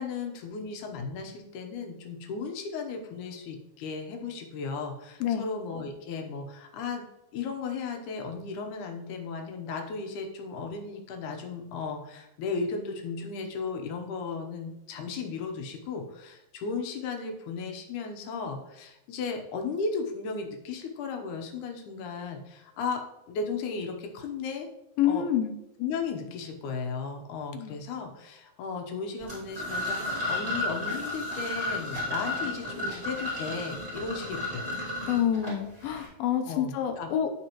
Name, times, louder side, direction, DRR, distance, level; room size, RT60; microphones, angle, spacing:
voice 1, 0.0-7.0 7.3-23.0 23.3-24.7 25.1-25.2 25.8-34.7 36.4-37.1, left 4 dB, 70° left, 3 dB, 2.2 m, -35 dB
voice 2, 25.0-25.6 27.5-27.7 35.1-37.3, left 10 dB, 90° left, 6 dB, 2.6 m, -27 dB
sound 1, 29.2-36.1, left 1 dB, 10° right, 2.2 m, -33 dB
14.0 x 4.7 x 3.0 m, 0.90 s
omnidirectional pair, 4.1 m